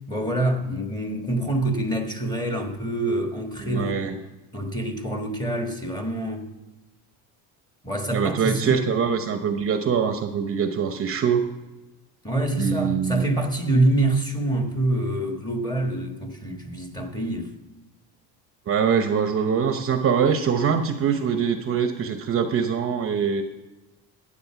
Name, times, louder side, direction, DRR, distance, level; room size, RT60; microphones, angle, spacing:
voice 1, 0.1-4.2 4.5-6.5 7.8-8.8 12.2-17.5, right 1 dB, 10° left, 1.5 m, -26 dB
voice 2, 3.6-4.1 8.1-11.4 12.6-13.2 18.7-23.4, right 7 dB, 35° right, 0.8 m, -23 dB
12.5 x 8.6 x 5.9 m
cardioid pair, 145°, 39 cm